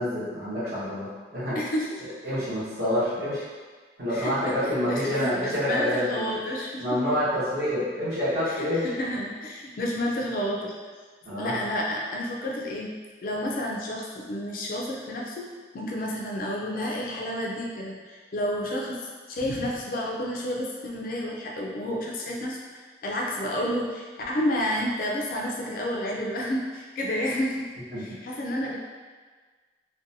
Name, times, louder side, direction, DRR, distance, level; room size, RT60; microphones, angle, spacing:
voice 1, 0.0-1.6 2.2-3.4 4.0-6.4 6.8-8.9 11.2-11.6 27.9-28.0, left 1 dB, 60° right, -12 dB, 0.9 m, -27 dB
voice 2, 1.5-2.2 4.1-7.0 8.5-10.7 11.4-12.9 13.2-15.5 15.7-27.7 28.0-28.8, left 1 dB, 50° left, -2 dB, 0.3 m, -30 dB
2.5 x 2.1 x 2.7 m, 1.5 s
head